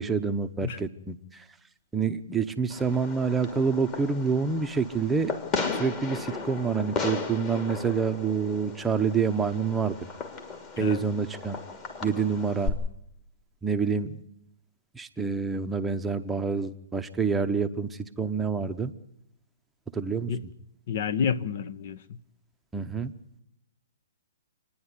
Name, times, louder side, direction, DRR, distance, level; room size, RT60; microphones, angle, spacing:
voice 1, 0.0-1.4 1.9-5.3 5.7-10.0 10.8-11.6 12.0-12.8 13.6-14.2 14.9-18.9 19.9-20.3 22.7-23.1, right 5 dB, 10° right, 0.8 m, -27 dB
Fireworks, 2.7-12.7, left 4 dB, 30° left, 3.1 m, -36 dB
voice 2, 20.9-22.2, left 7 dB, 55° left, 0.8 m, -29 dB
27.0 x 10.0 x 9.8 m
hypercardioid pair, 140°, 0 cm